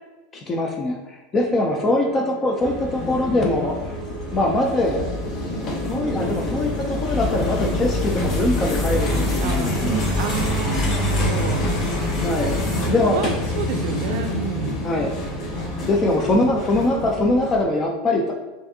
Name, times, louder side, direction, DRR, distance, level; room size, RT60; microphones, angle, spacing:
voice 1, 0.3-4.0 4.3-5.1 5.8-10.0 12.2-13.2 14.8-15.2 15.9-18.4, left 2 dB, 25° left, 1 dB, 0.5 m, -22 dB
sound 1, 1.6-15.9, right 1 dB, 25° right, 0.7 m, -36 dB
sound 2, 2.6-17.6, left 1 dB, 40° left, 1.0 m, -26 dB
voice 2, 9.4-11.6 12.4-12.5 12.9-13.3 13.6-14.8, right 6 dB, 65° right, 6 dB, 0.5 m, -29 dB
4.8 x 2.5 x 2.7 m, 1.1 s
supercardioid pair, 120°, 0 cm